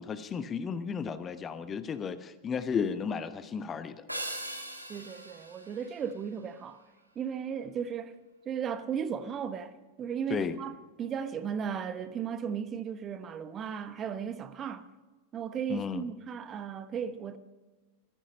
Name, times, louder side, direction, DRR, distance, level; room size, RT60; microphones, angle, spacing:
voice 1, 0.0-4.1 10.3-10.6 15.7-16.0, left 6 dB, 25° left, 0.9 m, -33 dB
sound 1, 4.1-6.7, right 1 dB, 90° right, 2.1 m, -41 dB
voice 2, 4.9-6.8 7.1-8.2 8.4-14.9 15.3-17.4, right 7 dB, 25° right, 1.0 m, -36 dB
15.0 x 14.5 x 5.5 m
figure-of-eight pair, 90°, 0 cm